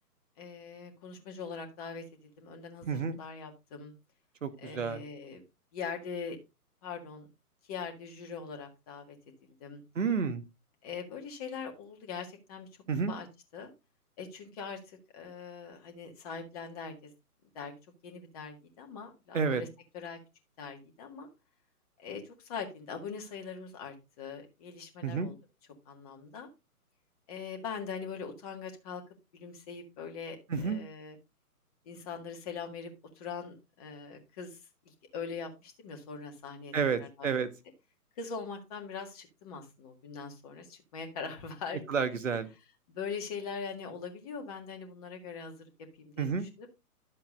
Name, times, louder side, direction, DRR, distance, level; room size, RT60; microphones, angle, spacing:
voice 1, 0.4-3.9 4.6-5.4 5.7-6.4 6.8-7.3 7.7-9.2 9.6-9.8 10.8-12.7 13.1-13.3 13.5-13.7 14.2-17.1 17.5-17.7 18.0-19.7 19.9-20.2 20.6-21.3 22.0-25.4 25.9-26.5 27.3-29.0 29.3-31.2 31.9-32.9 33.2-34.6 34.9-36.7 37.0-37.4 38.2-41.8 42.9-45.7 46.0-46.3 46.6-46.7, left 5 dB, 25° left, 3 dB, 1.8 m, -42 dB
voice 2, 2.9-3.2 4.4-5.0 9.9-10.4 12.9-13.1 19.3-19.6 25.0-25.3 30.5-30.8 36.7-37.5 41.9-42.5 46.2-46.5, right 5 dB, 55° right, 10 dB, 1.5 m, -30 dB
11.5 x 7.7 x 2.6 m, 0.26 s
figure-of-eight pair, 130°, 46 cm